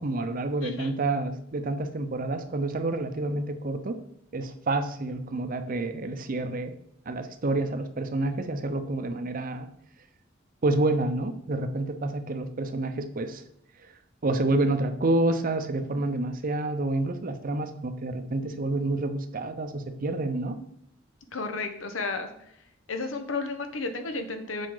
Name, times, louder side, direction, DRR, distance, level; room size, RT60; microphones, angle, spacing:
voice 1, 0.0-4.0 4.3-6.7 7.1-9.7 10.6-13.4 14.2-20.6, right 2 dB, 45° right, 8 dB, 0.6 m, -28 dB
voice 2, 0.6-0.9 21.3-22.3 22.9-24.7, left 3 dB, 90° left, 7 dB, 0.9 m, -32 dB
7.4 x 5.1 x 3.8 m, 0.74 s
head